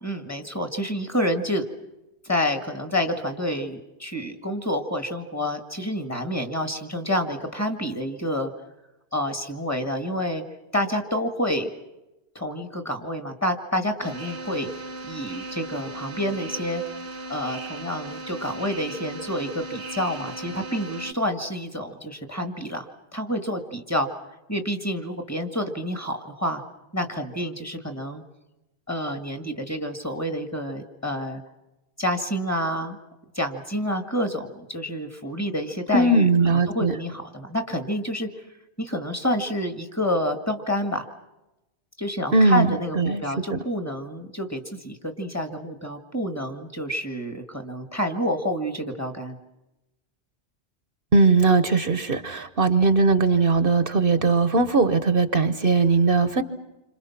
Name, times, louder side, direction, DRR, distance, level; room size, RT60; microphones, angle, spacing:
voice 1, 0.0-1.7 2.2-8.5 9.1-10.4 10.7-11.7 12.4-14.7 15.1-16.8 17.3-22.9 23.1-24.1 24.5-26.6 26.9-28.2 28.9-31.4 32.0-33.0 33.3-38.3 38.8-41.0 42.0-49.4, equal, 15° left, 6 dB, 1.9 m, -28 dB
sound 1, 14.0-21.1, right 2 dB, 80° right, 1.4 m, -37 dB
voice 2, 35.9-36.9 42.3-43.6 51.1-56.4, right 3 dB, 55° right, 11 dB, 1.2 m, -20 dB
28.0 x 26.0 x 5.9 m, 0.97 s
omnidirectional pair, 1.1 m